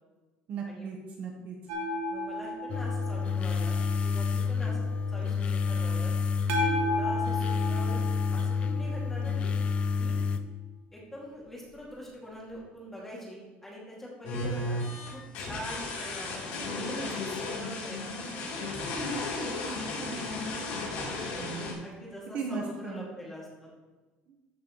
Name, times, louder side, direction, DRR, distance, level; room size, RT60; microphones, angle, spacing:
voice 1, 0.5-1.6 21.4-21.9 22.3-23.1, right 5 dB, 40° right, 1 dB, 1.2 m, -37 dB
sound 1, 1.7-4.5 6.5-9.7 12.5-12.6, left 1 dB, 65° right, 1.5 m, -34 dB
voice 2, 2.1-6.1 6.5-8.0 8.3-9.5 10.0-10.2 10.9-14.8 15.1-20.0 21.8-23.5, equal, 5° left, -4 dB, 2.3 m, -44 dB
sound 2, 2.7-10.4, left 5 dB, 30° left, 0.5 m, -29 dB
sound 3, 14.2-21.7, left 2 dB, 85° left, 3.2 m, -34 dB
13.5 x 6.9 x 3.1 m, 1.2 s
cardioid pair, 175°, 4 cm